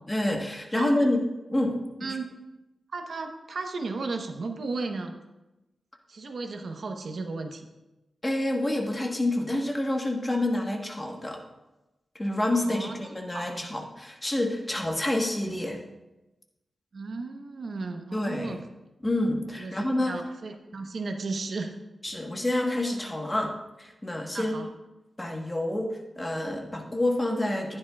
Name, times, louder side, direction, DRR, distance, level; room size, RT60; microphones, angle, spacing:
voice 1, 0.1-2.2 8.2-11.4 12.1-15.8 18.1-18.6 19.0-20.2 22.0-24.6 25.2-27.8, left 1 dB, 15° left, 1 dB, 1.3 m, -28 dB
voice 2, 0.8-1.1 2.0-2.3 2.9-5.1 6.1-7.7 12.6-13.5 16.9-18.6 19.6-21.7 24.3-24.7, right 3 dB, 60° right, 4 dB, 1.0 m, -35 dB
15.0 x 9.9 x 2.4 m, 1.0 s
wide cardioid pair, 130°, 0 cm